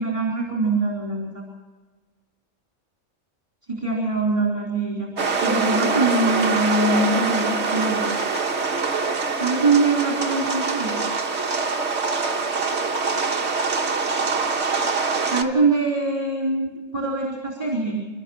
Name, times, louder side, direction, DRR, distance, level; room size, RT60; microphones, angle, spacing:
voice 1, 0.0-1.5 3.7-5.2 5.4-8.1 9.4-11.0 15.3-18.0, right 3 dB, 25° right, -2 dB, 4.4 m, -23 dB
sound 1, 5.2-15.4, right 4 dB, 60° right, 1.8 m, -24 dB
29.5 x 13.5 x 7.4 m, 1.4 s
omnidirectional pair, 1.3 m